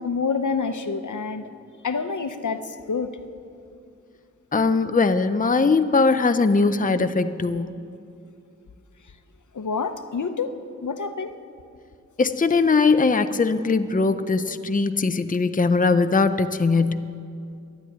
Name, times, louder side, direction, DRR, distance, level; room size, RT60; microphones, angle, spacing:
voice 1, 0.0-1.5 1.8-3.1 9.5-10.5 10.8-11.3, left 5 dB, 75° left, 9 dB, 0.8 m, -27 dB
voice 2, 4.5-7.7 12.2-17.0, left 4 dB, 25° left, 10 dB, 0.6 m, -20 dB
12.5 x 11.0 x 9.3 m, 2.5 s
wide cardioid pair, 60°, 30 cm